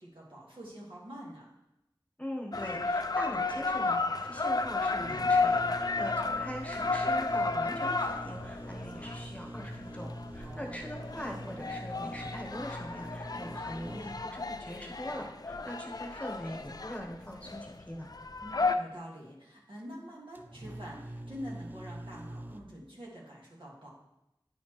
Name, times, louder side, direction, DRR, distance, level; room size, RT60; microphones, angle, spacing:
voice 1, 0.0-1.5 10.4-10.8 18.4-23.9, equal, 75° right, -5 dB, 1.8 m, -46 dB
voice 2, 2.2-18.1, equal, 15° left, 0 dB, 1.0 m, -42 dB
sound 1, 2.5-18.7, left 3 dB, 50° left, 0.4 m, -33 dB
sound 2, 5.0-14.5 20.3-22.6, right 1 dB, 20° right, 0.4 m, -44 dB
9.2 x 4.3 x 3.1 m, 0.88 s
wide cardioid pair, 40°, 9 cm